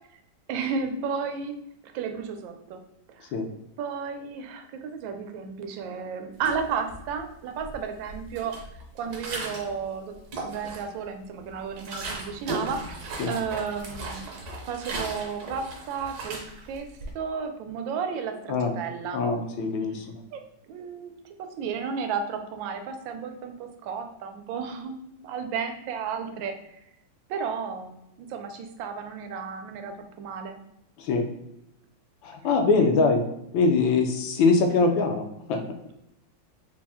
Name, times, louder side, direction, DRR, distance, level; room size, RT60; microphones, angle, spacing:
voice 1, 0.5-1.5 1.8-2.8 3.1-3.4 3.8-8.6 8.9-10.1 10.4-13.0 13.3-16.4 16.7-16.9 17.1-19.2 20.3-20.4 20.7-21.1 21.4-26.5 27.3-30.6 32.8-33.1, right 6 dB, 80° right, 6 dB, 1.3 m, -33 dB
sound 1, 6.4-7.2 7.6-9.8 10.1-11.0 11.4-17.1, right 2 dB, 60° right, 1.2 m, -37 dB
voice 2, 19.1-20.2 31.0-31.3 32.2-33.2 33.5-35.6, left 4 dB, 80° left, 4 dB, 1.3 m, -23 dB
4.2 x 2.0 x 3.4 m, 0.81 s
omnidirectional pair, 2.1 m